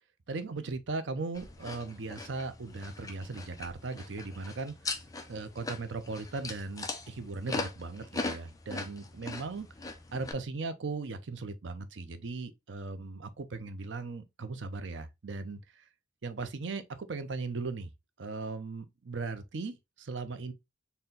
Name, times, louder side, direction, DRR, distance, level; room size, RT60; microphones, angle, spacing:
voice 1, 0.3-4.7 5.3-9.7 10.1-15.6 16.2-17.9 18.2-20.5, right 3 dB, 85° right, 0.6 m, -38 dB
sound 1, 1.3-10.3, left 3 dB, 20° left, 0.6 m, -40 dB
4.2 x 2.2 x 3.6 m
head